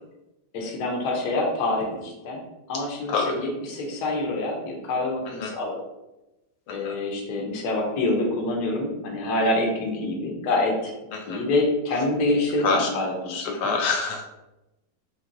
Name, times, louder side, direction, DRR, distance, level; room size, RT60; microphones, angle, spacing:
voice 1, 0.5-2.4 2.7-5.8 6.7-10.9 11.3-13.7, left 2 dB, 60° left, 0 dB, 1.4 m, -26 dB
voice 2, 13.3-14.2, left 4 dB, 85° left, 1 dB, 1.3 m, -25 dB
4.4 x 3.0 x 3.8 m, 0.98 s
omnidirectional pair, 2.1 m